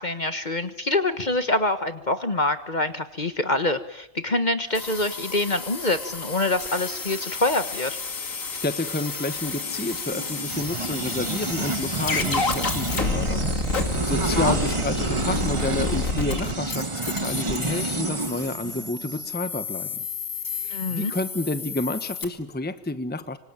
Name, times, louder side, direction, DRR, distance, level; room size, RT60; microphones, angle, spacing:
voice 1, 0.0-8.0 14.2-14.5 20.7-21.1, left 2 dB, 35° left, 10 dB, 1.4 m, -25 dB
sound 1, 4.7-22.3, left 4 dB, 70° left, 2.8 m, -31 dB
voice 2, 8.3-20.1 20.5-23.4, left 2 dB, 10° left, 11 dB, 1.2 m, -30 dB
sound 2, 9.6-19.3, right 3 dB, 25° right, 1.3 m, -29 dB
25.5 x 25.5 x 9.0 m, 0.77 s
omnidirectional pair, 1.4 m